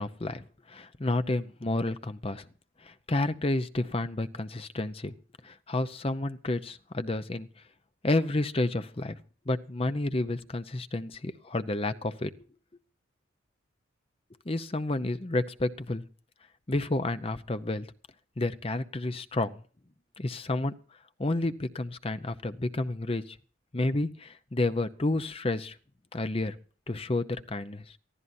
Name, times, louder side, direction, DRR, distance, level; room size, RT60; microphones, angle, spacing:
voice 1, 0.0-2.5 2.8-5.1 5.4-7.5 8.0-9.2 9.5-12.3 14.5-16.0 16.7-17.9 18.4-19.6 20.2-20.7 21.2-23.4 23.7-25.8 26.1-26.5 26.9-28.0, left 2 dB, 30° left, 11 dB, 0.7 m, -30 dB
23.5 x 14.5 x 2.7 m, 0.40 s
head